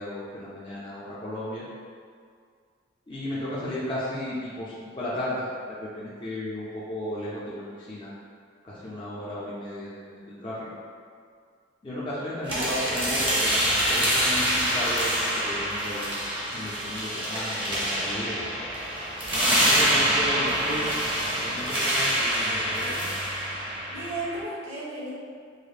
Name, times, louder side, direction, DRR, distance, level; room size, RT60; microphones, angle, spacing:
voice 1, 0.0-1.7 3.1-8.1 8.6-10.7 11.8-13.6 13.9-16.1 16.5-18.4 19.4-21.0 21.4-23.1, left 1 dB, 25° left, -9 dB, 0.4 m, -34 dB
voice 2, 12.4-13.4 23.9-25.1, right 2 dB, 75° right, -8 dB, 1.0 m, -34 dB
sound 1, 12.5-24.4, equal, 25° right, 0.7 m, -26 dB
4.9 x 2.0 x 2.3 m, 2.1 s
head